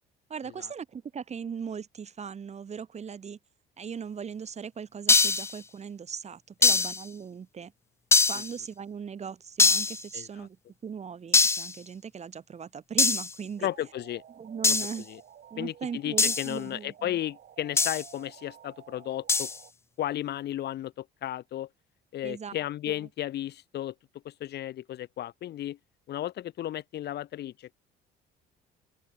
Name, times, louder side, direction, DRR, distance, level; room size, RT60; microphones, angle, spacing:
voice 1, 0.3-3.4 3.8-7.7 8.3-10.6 10.8-13.7 14.4-15.1 15.5-17.2 22.2-23.1, right 7 dB, 35° right, 1.6 m, -39 dB
sound 1, 5.1-5.6 6.6-7.0 8.1-8.5 9.6-10.0 11.3-11.7 13.0-13.3 14.6-15.0 16.2-16.5 17.8-18.1 19.3-19.6, left 4 dB, 15° left, 0.3 m, -22 dB
voice 2, 10.1-10.5 13.6-14.2 14.7-14.8 15.1-15.2 15.6-19.5 20.0-21.7 22.1-23.9 24.2-25.8 26.1-27.7, left 12 dB, 65° left, 2.1 m, -34 dB
sound 2, 13.6-19.7, right 9 dB, 55° right, 4.0 m, -53 dB
open air
cardioid pair, 90°, 19 cm